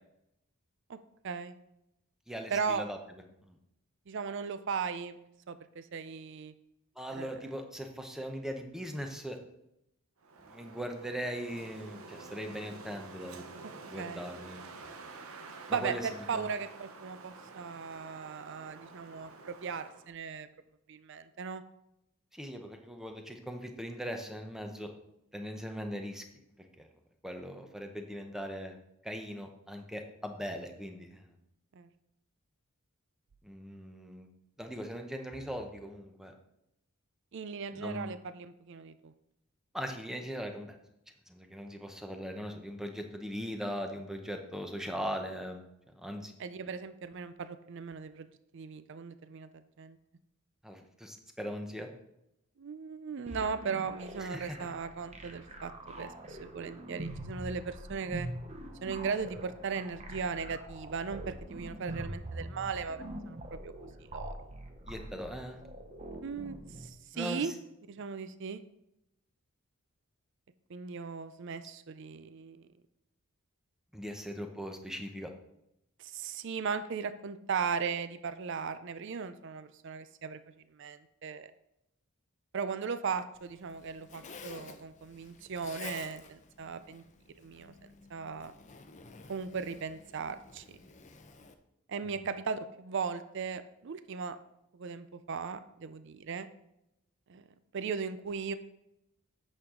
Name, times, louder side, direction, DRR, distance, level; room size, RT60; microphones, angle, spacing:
voice 1, 1.2-1.5 2.5-2.8 4.1-5.2 5.5-6.5 7.1-7.3 14.0-14.3 15.7-20.5 20.9-21.6 31.7-31.9 37.3-39.1 46.4-48.3 48.5-50.0 52.6-58.3 58.8-63.4 63.6-63.7 64.1-64.4 66.2-67.5 67.9-68.6 70.7-72.7 76.0-80.4 80.7-81.5 82.5-87.0 87.4-87.7 88.1-88.5 89.3-90.6 91.9-94.4 94.7-96.5 97.3-97.4 97.7-98.5, right 5 dB, 55° right, 12 dB, 0.4 m, -37 dB
voice 2, 2.3-3.0 3.5-3.6 7.0-9.4 10.5-13.6 13.8-14.7 15.7-16.5 22.3-24.9 25.3-26.2 26.6-26.9 27.2-28.8 29.0-31.4 33.4-34.3 34.6-36.3 37.7-38.1 39.7-40.7 41.3-45.6 45.9-46.3 50.6-51.9 54.2-54.7 64.9-65.6 67.1-67.5 73.9-75.3 92.2-92.3, equal, ahead, 4 dB, 0.8 m, -40 dB
Wind, 10.2-20.1, right 3 dB, 70° right, 0.9 m, -49 dB
sound 1, 53.3-66.9, right 1 dB, 30° right, 0.9 m, -44 dB
Zipper (clothing), 83.3-91.5, left 4 dB, 35° left, 0.6 m, -51 dB
8.8 x 6.4 x 3.7 m, 0.83 s
head